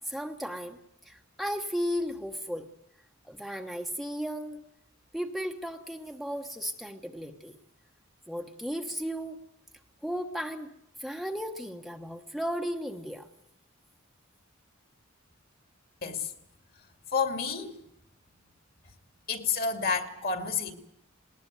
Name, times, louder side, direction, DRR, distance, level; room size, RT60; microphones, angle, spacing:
voice 1, 0.0-2.7 3.2-4.6 5.1-7.6 8.3-9.4 10.0-10.7 11.0-13.3, equal, ahead, 1.1 m, -35 dB
voice 2, 16.0-16.3 17.1-17.8 19.3-20.7, left 5 dB, 45° left, 2.5 m, -29 dB
19.5 x 19.5 x 9.3 m
head